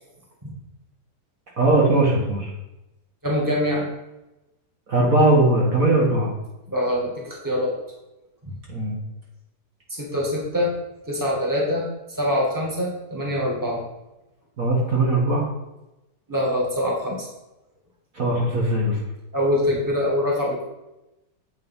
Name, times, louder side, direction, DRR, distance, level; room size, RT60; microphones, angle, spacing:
voice 1, 1.6-2.5 4.9-6.3 8.7-8.9 14.6-15.4 18.1-19.0, right 2 dB, 50° right, -3 dB, 2.0 m, -19 dB
voice 2, 3.2-3.9 6.7-7.7 9.9-10.7 11.1-11.8 12.2-13.8 16.3-17.3 19.3-20.6, left 1 dB, 10° right, -3 dB, 2.1 m, -24 dB
8.4 x 5.4 x 5.5 m, 0.96 s
omnidirectional pair, 2.0 m